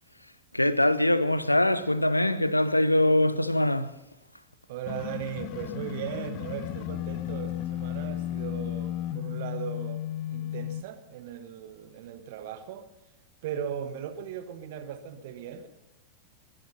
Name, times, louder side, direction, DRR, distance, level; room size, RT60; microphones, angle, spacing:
voice 1, 0.5-3.9, left 1 dB, 85° left, 0.7 m, -23 dB
voice 2, 4.7-10.0 10.3-12.9 13.4-15.7, right 8 dB, 50° right, 1.3 m, -38 dB
sound 1, 4.9-10.8, left 12 dB, 45° left, 0.8 m, -34 dB
21.5 x 11.0 x 5.7 m
figure-of-eight pair, 90°, 0 cm